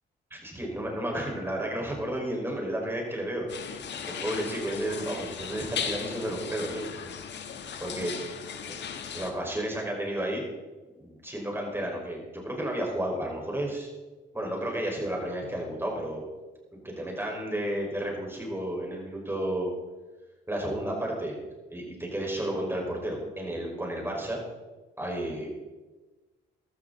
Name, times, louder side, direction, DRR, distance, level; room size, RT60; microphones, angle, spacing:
voice 1, 0.3-3.5 4.0-6.9 7.8-8.1 9.1-10.4 11.0-13.9 14.3-16.2 16.7-19.7 20.5-21.4 21.7-24.4 25.0-25.5, right 1 dB, 10° right, -1 dB, 5.3 m, -32 dB
sound 1, 3.5-9.3, left 7 dB, 60° left, 1.6 m, -37 dB
15.0 x 12.5 x 4.1 m, 1.2 s
cardioid pair, 90°, 20 cm